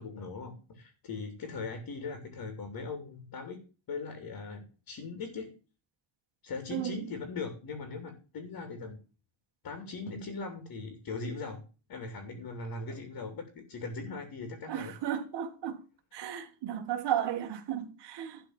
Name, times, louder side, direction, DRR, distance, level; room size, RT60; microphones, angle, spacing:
voice 1, 0.0-3.6 3.9-5.5 6.4-9.0 9.6-11.6 11.9-14.9, left 4 dB, 50° left, 3.0 m, -40 dB
voice 2, 6.7-7.0 14.7-15.8 16.1-18.4, right 10 dB, 60° right, 1.8 m, -34 dB
12.0 x 4.7 x 7.9 m
cardioid pair, 120°, 46 cm